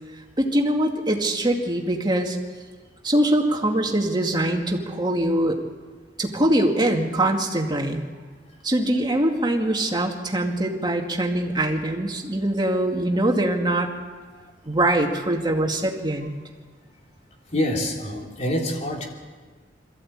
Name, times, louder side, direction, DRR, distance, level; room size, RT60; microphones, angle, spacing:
voice 1, 0.4-2.4 3.0-5.6 6.2-8.0 8.6-13.9 14.7-16.3, right 1 dB, 25° right, 1 dB, 2.2 m, -23 dB
voice 2, 17.5-19.0, left 1 dB, 40° left, 0 dB, 3.4 m, -26 dB
22.5 x 14.5 x 8.7 m, 1.4 s
head